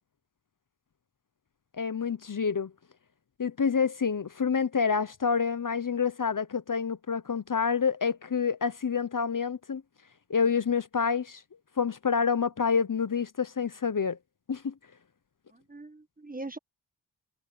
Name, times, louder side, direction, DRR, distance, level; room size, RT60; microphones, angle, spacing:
voice 1, 1.8-2.7 3.4-9.8 10.3-11.4 11.8-14.2 14.5-14.7, left 6 dB, 40° left, 1.0 m, -28 dB
voice 2, 15.5-16.6, right 2 dB, 20° right, 1.6 m, -41 dB
cardioid pair, 40°, 46 cm